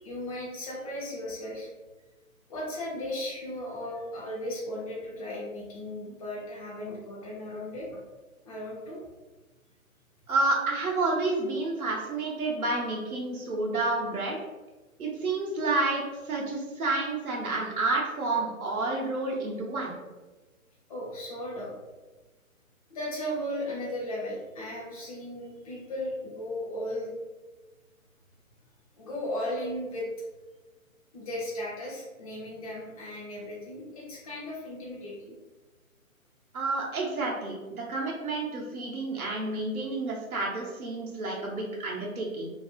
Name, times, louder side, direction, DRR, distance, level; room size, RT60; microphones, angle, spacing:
voice 1, 0.0-1.7 2.5-8.0 8.4-9.0 20.9-21.7 22.9-27.1 29.0-30.1 31.1-35.4 39.1-39.2, left 1 dB, 25° left, -5 dB, 0.7 m, -36 dB
voice 2, 10.3-14.4 15.0-20.0 36.5-42.5, right 2 dB, 80° right, -2 dB, 0.8 m, -30 dB
2.7 x 2.5 x 2.3 m, 1.2 s
figure-of-eight pair, 140°, 43 cm